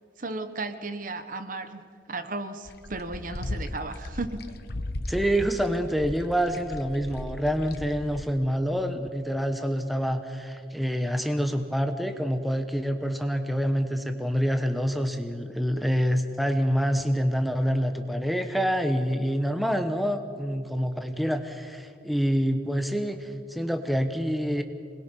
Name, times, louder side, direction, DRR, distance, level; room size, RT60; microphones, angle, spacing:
voice 1, 0.2-4.4, right 3 dB, 45° right, 9 dB, 1.1 m, -35 dB
sound 1, 2.7-8.3, left 1 dB, 60° left, 1.0 m, -37 dB
voice 2, 5.1-24.6, equal, ahead, 7 dB, 0.9 m, -27 dB
27.0 x 21.0 x 5.4 m, 2.3 s
head